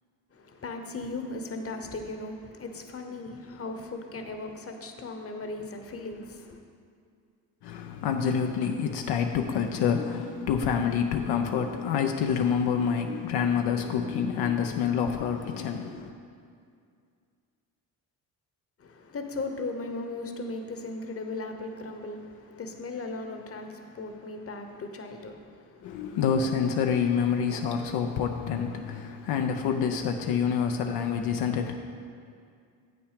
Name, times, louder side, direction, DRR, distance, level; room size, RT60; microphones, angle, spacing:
voice 1, 0.3-6.6 18.8-26.1, left 2 dB, 35° left, 6 dB, 1.0 m, -37 dB
voice 2, 7.6-16.1 25.8-31.8, left 7 dB, 80° left, 4 dB, 0.6 m, -27 dB
8.1 x 6.1 x 4.9 m, 2.3 s
supercardioid pair, 70°, 39 cm